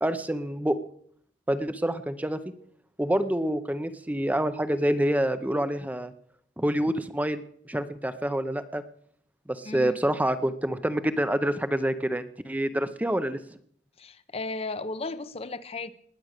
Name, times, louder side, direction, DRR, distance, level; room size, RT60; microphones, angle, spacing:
voice 1, 0.0-0.8 1.5-2.4 3.0-6.1 6.6-8.8 9.5-13.4, right 1 dB, 10° right, 11 dB, 0.6 m, -27 dB
voice 2, 9.6-10.0 14.0-15.9, left 3 dB, 35° left, 13 dB, 0.7 m, -35 dB
19.5 x 8.6 x 6.6 m, 0.65 s
head